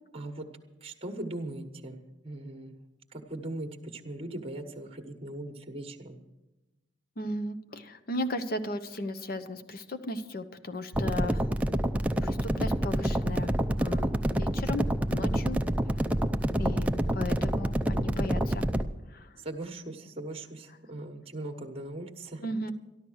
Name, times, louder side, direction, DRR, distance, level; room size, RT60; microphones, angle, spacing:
voice 1, 0.1-0.5 0.8-2.0 2.2-2.7 3.1-6.2 17.0-17.2 19.4-22.4, right 1 dB, 30° right, 5 dB, 1.3 m, -39 dB
voice 2, 7.2-11.4 12.2-13.5 13.8-14.1 14.4-14.8 15.1-15.6 16.6-16.9 17.1-18.7 19.1-19.3 22.4-22.7, left 1 dB, 50° left, 10 dB, 0.9 m, -35 dB
sound 1, 10.9-18.8, right 1 dB, 5° right, 0.5 m, -27 dB
13.5 x 12.0 x 6.4 m, 1.0 s
head